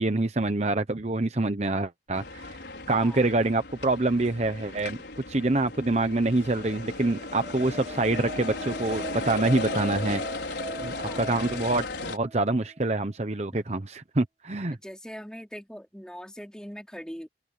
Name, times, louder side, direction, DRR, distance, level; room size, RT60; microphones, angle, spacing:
voice 1, 0.0-2.6 2.9-5.0 5.3-10.2 10.8-14.8, right 2 dB, 40° right, 0.9 m, -26 dB
sound 1, 2.1-12.2, left 2 dB, 75° left, 5.4 m, -36 dB
voice 2, 2.9-3.2 11.0-11.3 14.7-17.3, equal, 5° left, 3.2 m, -41 dB
sound 2, 7.0-12.8, right 3 dB, 20° right, 1.6 m, -41 dB
open air
head